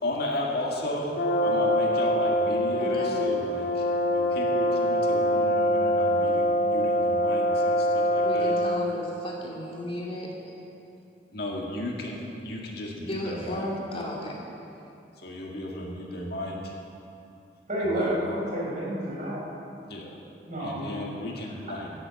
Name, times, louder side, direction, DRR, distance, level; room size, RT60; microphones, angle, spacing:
voice 1, 0.0-8.6 11.3-13.7 15.2-16.7 17.8-18.2 19.9-20.2 20.6-21.9, left 1 dB, 60° left, -1 dB, 1.9 m, -34 dB
Brass instrument, 1.2-9.0, equal, 85° left, 1.5 m, -24 dB
voice 2, 2.8-3.2 8.2-10.5 13.1-14.4, equal, 30° left, -3 dB, 2.5 m, -34 dB
voice 3, 17.7-19.4 20.5-20.9, right 1 dB, 45° right, -5 dB, 4.3 m, -29 dB
17.0 x 7.9 x 7.0 m, 2.7 s
head